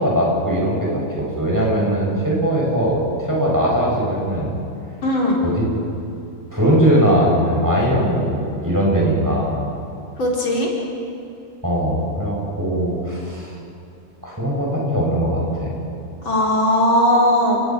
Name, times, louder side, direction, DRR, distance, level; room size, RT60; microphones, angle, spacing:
voice 1, 0.0-4.5 5.4-5.6 6.5-9.7 11.6-13.5 14.2-15.7, equal, 10° right, -4 dB, 7.5 m, -20 dB
voice 2, 5.0-5.4 10.2-10.7 16.2-17.6, left 1 dB, 75° left, -3 dB, 4.9 m, -18 dB
29.5 x 21.5 x 6.2 m, 2.6 s
omnidirectional pair, 2.2 m